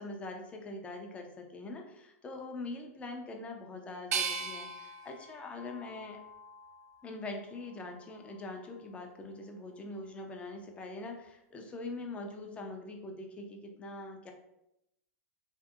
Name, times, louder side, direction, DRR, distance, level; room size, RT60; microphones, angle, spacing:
voice 1, 0.0-6.2 7.0-14.3, left 2 dB, 15° left, 3 dB, 0.3 m, -43 dB
sound 1, 4.1-7.0 7.6-8.4, right 5 dB, 80° right, 0.3 m, -39 dB
2.6 x 2.6 x 2.3 m, 0.83 s
hypercardioid pair, 135°, 8 cm